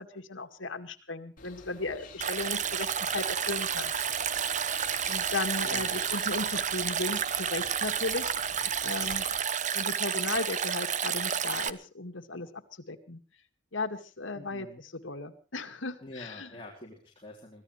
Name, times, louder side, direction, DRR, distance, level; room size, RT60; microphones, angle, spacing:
voice 1, 0.0-3.9 5.1-9.3 9.7-13.2 13.7-16.5, left 3 dB, 80° left, 7 dB, 2.1 m, -36 dB
sound 1, 1.4-9.4, left 4 dB, 45° left, 3.3 m, -50 dB
Stream, 2.2-11.7, right 8 dB, 40° right, 0.9 m, -30 dB
voice 2, 5.6-6.0 14.4-14.8 16.0-17.6, left 1 dB, 25° left, -1 dB, 3.8 m, -47 dB
24.0 x 17.0 x 3.3 m, 0.36 s
head